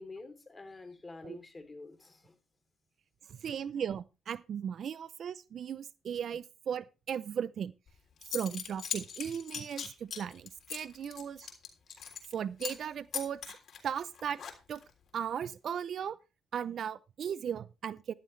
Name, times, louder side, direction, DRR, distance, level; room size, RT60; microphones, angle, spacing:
voice 1, 0.0-2.4, left 3 dB, 25° left, 3.1 m, -48 dB
voice 2, 3.3-7.7 8.3-11.5 12.3-13.4 13.8-14.4 14.7-14.8 15.1-16.2 16.5-18.1, right 8 dB, 60° right, 0.6 m, -37 dB
Zipper (clothing) / Coin (dropping), 7.9-8.0 8.2-12.3 12.6-12.8 13.1-14.9, left 7 dB, 60° left, 3.4 m, -40 dB
13.5 x 11.5 x 3.3 m
cardioid pair, 90°, 0 cm